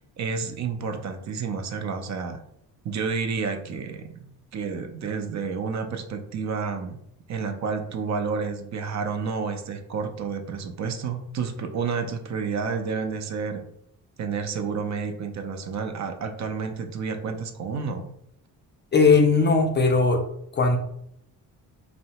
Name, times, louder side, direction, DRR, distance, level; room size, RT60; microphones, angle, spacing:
voice 1, 0.2-2.4 2.8-7.0 7.3-13.6 14.2-18.1, right 5 dB, 45° right, 6 dB, 0.4 m, -30 dB
voice 2, 18.9-20.2 20.5-20.8, left 4 dB, 30° left, 4 dB, 0.4 m, -18 dB
2.6 x 2.1 x 2.8 m, 0.73 s
cardioid pair, 80°, 39 cm